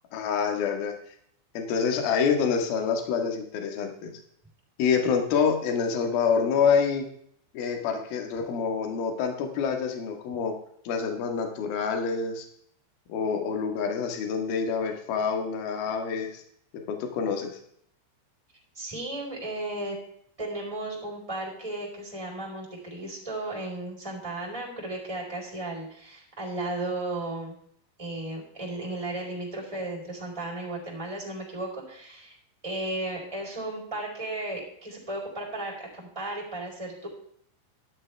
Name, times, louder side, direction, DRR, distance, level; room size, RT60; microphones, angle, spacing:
voice 1, 0.1-0.9 1.5-4.1 4.8-7.1 7.5-10.5 10.8-12.5 13.1-16.4 16.9-17.6, left 6 dB, 60° left, 4 dB, 3.1 m, -27 dB
voice 2, 18.7-20.0 20.4-27.5 28.0-32.4 32.6-37.1, right 2 dB, 5° right, -3 dB, 3.7 m, -35 dB
13.0 x 11.5 x 3.4 m, 0.66 s
omnidirectional pair, 5.5 m